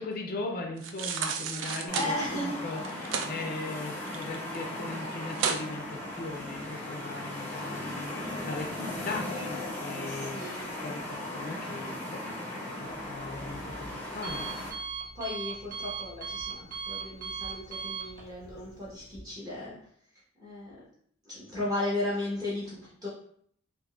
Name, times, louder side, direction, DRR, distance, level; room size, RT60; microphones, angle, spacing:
voice 1, 0.0-12.2 12.8-14.5, left 2 dB, 50° left, 2 dB, 0.4 m, -39 dB
sound 1, 0.8-2.1 2.8-3.3 3.7-4.6 4.9-5.0 5.3-5.6 6.1-6.2, right 6 dB, 80° right, 0.3 m, -32 dB
sound 2, 1.9-14.7, left 1 dB, 10° left, 0.7 m, -37 dB
voice 2, 1.9-2.6 10.1-10.5 15.1-19.7 20.4-20.8 21.2-23.1, left 1 dB, 20° right, -8 dB, 1.0 m, -35 dB
Alarm, 12.8-19.2, right 5 dB, 50° right, 0.7 m, -40 dB
3.6 x 2.5 x 2.4 m, 0.62 s
head